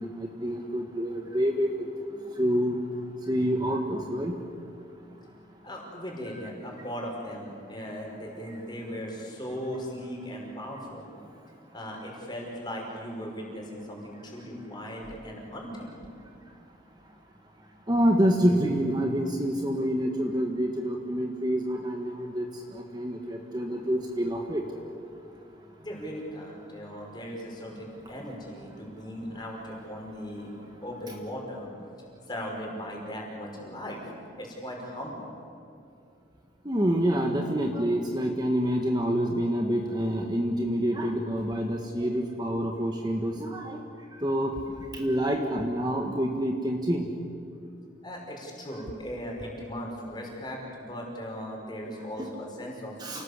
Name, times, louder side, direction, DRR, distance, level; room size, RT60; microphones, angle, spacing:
voice 1, 0.0-1.9 2.3-2.8 3.3-4.4 6.3-6.4 8.4-8.6 17.9-24.6 28.2-28.3 29.3-29.4 36.6-43.8 44.1-44.6 44.9-47.1 52.2-52.3 53.0-53.2, equal, 20° right, 2 dB, 1.6 m, -27 dB
voice 2, 5.6-11.1 11.7-16.0 25.8-30.6 30.8-31.7 32.3-34.0 34.4-35.3 48.0-53.2, equal, 20° left, -1 dB, 5.5 m, -38 dB
28.5 x 19.0 x 8.3 m, 2.6 s
head